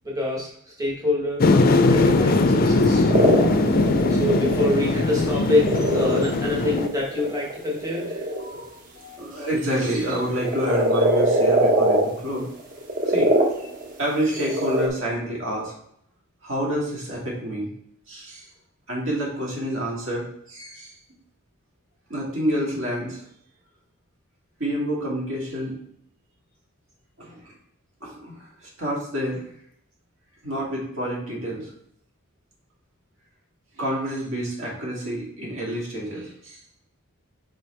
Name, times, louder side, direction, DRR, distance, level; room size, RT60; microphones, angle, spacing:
voice 1, 0.0-0.5 0.8-1.4 1.9-3.1 3.7-8.3, left 2 dB, 15° right, -3 dB, 1.4 m, -26 dB
sound 1, 1.4-6.9, left 2 dB, 40° left, 0.4 m, -20 dB
sound 2, 3.1-4.8 5.6-6.3 6.7-8.7 9.7-12.2 12.6-14.0 14.3-14.9, right 1 dB, 40° right, 1.1 m, -22 dB
voice 2, 8.3-12.5 13.0-13.3 14.0-15.7 16.4-17.7 18.1-18.5 18.9-20.9 22.1-23.2 24.6-25.7 27.2-27.5 28.0-29.4 30.4-31.7 33.8-36.6, equal, 60° right, -3 dB, 2.2 m, -28 dB
4.8 x 4.5 x 4.4 m, 0.70 s
head